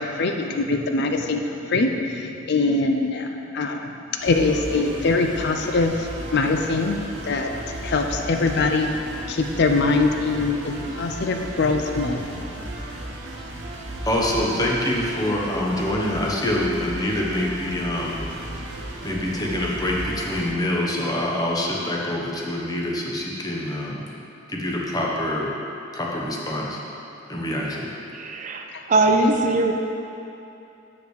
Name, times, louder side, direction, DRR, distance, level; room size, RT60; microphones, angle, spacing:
voice 1, 0.0-3.3 3.5-3.9 4.2-7.0 7.2-7.5 7.8-8.9 9.3-12.5 28.7-28.8, left 3 dB, 60° left, 4 dB, 0.5 m, -23 dB
sound 1, 4.2-20.5, right 1 dB, 65° right, 1.1 m, -35 dB
voice 2, 14.1-18.3 19.0-24.0 24.5-25.5 25.9-26.8 27.3-27.9, left 1 dB, 20° left, -3 dB, 1.0 m, -25 dB
voice 3, 28.1-29.7, right 2 dB, 40° right, 3 dB, 0.5 m, -21 dB
6.3 x 5.8 x 6.5 m, 2.9 s
head